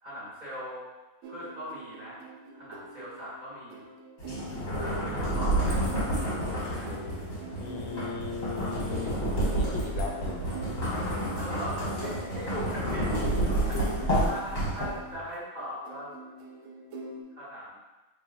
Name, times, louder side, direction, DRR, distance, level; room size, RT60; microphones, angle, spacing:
voice 1, 0.0-0.9 1.3-2.2 2.5-3.9 4.8-5.9 6.4-6.9 9.3-9.6 9.9-10.0 11.3-16.1 17.3-17.8, equal, 25° right, -9 dB, 1.4 m, -40 dB
sound 1, 1.2-17.2, right 2 dB, 85° right, 0.6 m, -45 dB
sound 2, 4.2-15.2, right 1 dB, 50° left, 1.7 m, -30 dB
voice 2, 7.6-10.4, left 5 dB, 85° left, 1 dB, 1.3 m, -37 dB
5.5 x 3.2 x 2.6 m, 1.1 s
omnidirectional pair, 1.9 m